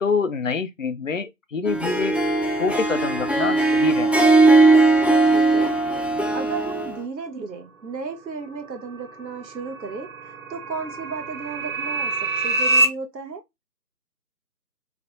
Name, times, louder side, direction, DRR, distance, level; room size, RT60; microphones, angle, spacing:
voice 1, 0.0-2.1 2.6-4.3, left 5 dB, 55° left, 0.5 m, -26 dB
Harp, 1.7-7.0, right 2 dB, 5° right, 0.3 m, -18 dB
voice 2, 5.3-5.7 6.3-10.1 10.5-13.4, right 4 dB, 90° right, 1.2 m, -34 dB
sound 1, 8.5-12.9, right 2 dB, 55° right, 0.7 m, -26 dB
3.3 x 2.0 x 3.7 m
figure-of-eight pair, 170°, 49 cm